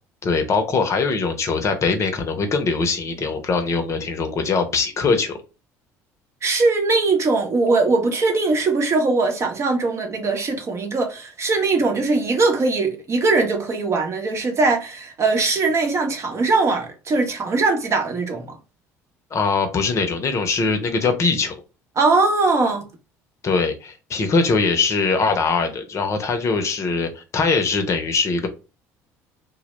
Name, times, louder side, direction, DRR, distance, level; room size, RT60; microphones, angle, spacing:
voice 1, 0.2-5.4 19.3-21.6 23.4-28.5, left 4 dB, 40° left, 0.6 m, -22 dB
voice 2, 6.4-18.6 22.0-22.9, right 3 dB, 40° right, 0.8 m, -20 dB
2.2 x 2.1 x 2.9 m
supercardioid pair, 75°, 7 cm